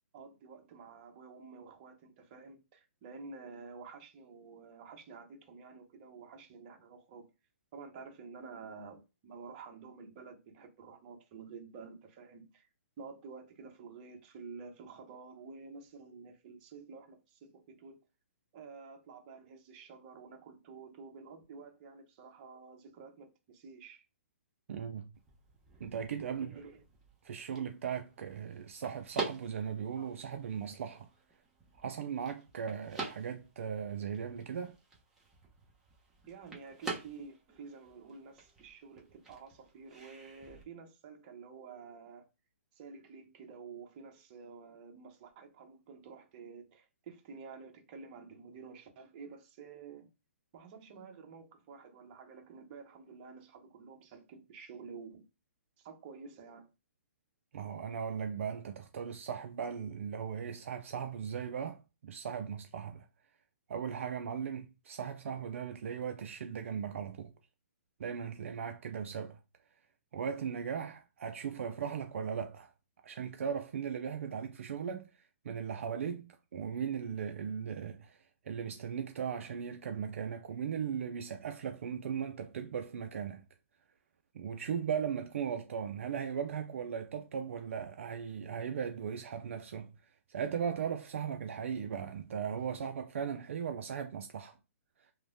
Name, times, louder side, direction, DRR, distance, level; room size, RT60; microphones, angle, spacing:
voice 1, 0.1-7.3 7.7-12.7 13.0-18.0 18.5-24.0 26.3-26.8 36.3-42.3 42.7-50.1 50.5-55.2 55.8-56.7, right 5 dB, 40° right, 0.8 m, -50 dB
voice 2, 24.7-25.1 25.8-26.5 27.2-31.1 31.8-34.8 57.5-63.1 63.7-67.3 68.0-69.4 70.1-72.7 73.0-83.4 84.3-94.6 95.0-95.1, right 7 dB, 65° right, 0.4 m, -38 dB
sound 1, 25.1-40.6, right 3 dB, 5° right, 0.8 m, -47 dB
3.0 x 2.1 x 2.6 m
hypercardioid pair, 135°, 8 cm